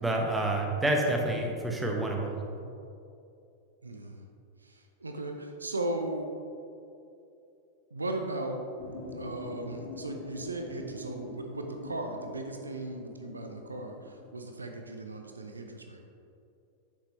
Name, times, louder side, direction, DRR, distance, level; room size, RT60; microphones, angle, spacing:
voice 1, 0.0-2.4, right 1 dB, 5° right, 0 dB, 1.1 m, -28 dB
voice 2, 3.8-4.2 4.6-6.3 7.9-8.6 9.1-16.1, right 2 dB, 80° right, 4 dB, 0.6 m, -37 dB
sound 1, 8.8-14.3, left 2 dB, 45° left, 1.4 m, -44 dB
8.2 x 6.6 x 3.2 m, 2.6 s
figure-of-eight pair, 90°, 0 cm